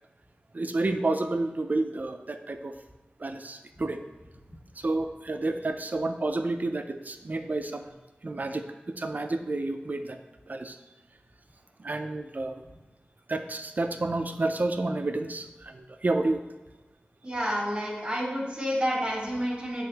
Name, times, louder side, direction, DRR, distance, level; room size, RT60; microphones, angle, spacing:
voice 1, 0.5-2.7 3.2-4.0 4.8-7.9 8.2-10.2 10.5-10.8 11.8-12.6 13.3-16.4, right 2 dB, 50° right, 7 dB, 0.5 m, -30 dB
voice 2, 17.2-19.9, equal, 20° right, -5 dB, 1.6 m, -29 dB
8.0 x 3.6 x 3.4 m, 1.2 s
wide cardioid pair, 75°, 4 cm